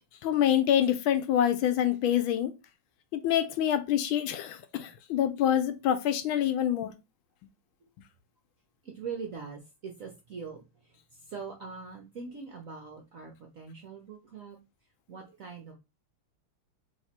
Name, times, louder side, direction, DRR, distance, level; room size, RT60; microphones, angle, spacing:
voice 1, 0.2-2.5 3.1-6.9, left 10 dB, 80° left, 1.3 m, -26 dB
voice 2, 8.8-14.6 15.1-15.7, right 5 dB, 65° right, 0.8 m, -42 dB
3.6 x 3.1 x 4.1 m
omnidirectional pair, 2.3 m